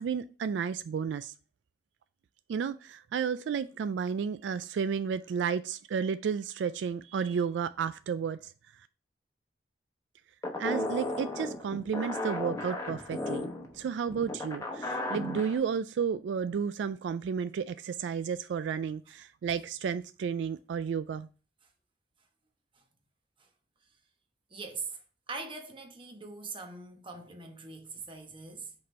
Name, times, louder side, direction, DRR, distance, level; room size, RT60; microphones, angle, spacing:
voice 1, 0.0-1.3 2.5-8.5 10.6-13.5 13.7-21.3, right 6 dB, 80° right, 0.3 m, -32 dB
sound 1, 10.4-15.6, left 2 dB, 20° left, 1.0 m, -35 dB
voice 2, 24.5-25.0 25.3-28.7, right 4 dB, 30° right, 1.0 m, -42 dB
5.3 x 4.2 x 4.4 m
head